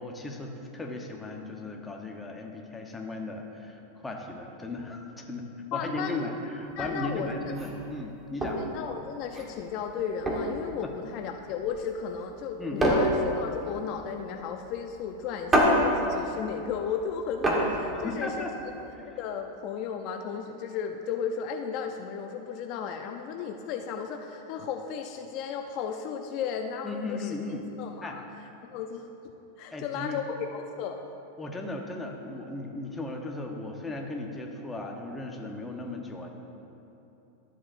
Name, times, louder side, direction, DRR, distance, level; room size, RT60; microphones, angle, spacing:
voice 1, 0.0-8.6 10.8-10.9 12.6-13.0 17.9-18.5 18.9-19.2 26.8-27.6 28.0-28.2 29.7-30.2 31.4-36.3, left 2 dB, 10° left, 1 dB, 0.9 m, -36 dB
voice 2, 5.7-6.2 6.8-7.5 8.6-18.5 19.1-27.3 27.8-28.2 28.6-29.1 29.6-30.2 30.5-31.0, left 7 dB, 50° left, 4 dB, 0.5 m, -34 dB
sound 1, 6.7-18.9, equal, 15° right, 1.3 m, -29 dB
13.0 x 7.5 x 2.5 m, 3.0 s
supercardioid pair, 130°, 0 cm